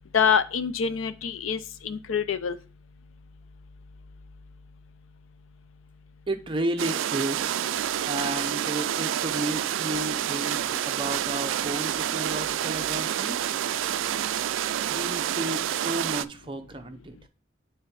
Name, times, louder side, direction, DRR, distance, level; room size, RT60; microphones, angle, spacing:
voice 1, 0.1-2.6, left 7 dB, 80° left, 13 dB, 0.5 m, -25 dB
voice 2, 6.3-7.6 8.1-13.5 14.9-17.2, right 1 dB, 25° right, 5 dB, 0.6 m, -33 dB
sound 1, 6.8-16.2, right 11 dB, 75° right, 0.3 m, -28 dB
6.6 x 3.5 x 4.7 m, 0.36 s
head